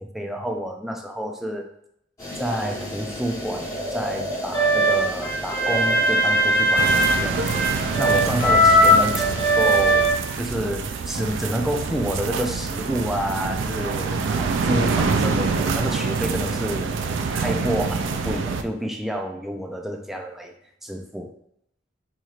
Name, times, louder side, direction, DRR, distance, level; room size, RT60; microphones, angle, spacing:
voice 1, 0.1-1.7 2.4-7.4 7.7-16.9 17.3-20.5 20.8-21.3, equal, ahead, 3 dB, 0.3 m, -29 dB
sound 1, 2.2-10.0, left 1 dB, 15° left, 1.2 m, -33 dB
sound 2, 4.5-10.1, equal, 55° left, 1.0 m, -19 dB
sound 3, 6.8-18.6, right 4 dB, 80° right, 0.3 m, -26 dB
4.2 x 3.0 x 2.4 m, 0.74 s
head